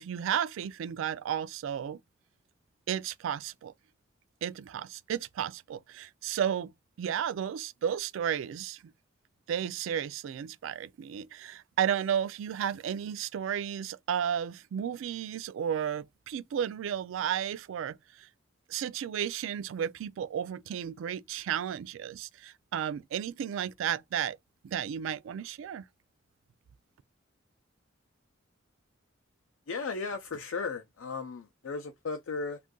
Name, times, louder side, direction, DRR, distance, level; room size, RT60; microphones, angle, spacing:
voice 1, 0.0-2.0 2.9-3.7 4.4-6.7 7.0-8.8 9.5-18.3 18.7-24.4 24.6-25.8, right 9 dB, 75° right, 0.3 m, -33 dB
voice 2, 29.7-32.6, left 4 dB, 90° left, 0.5 m, -35 dB
2.6 x 2.4 x 3.5 m
head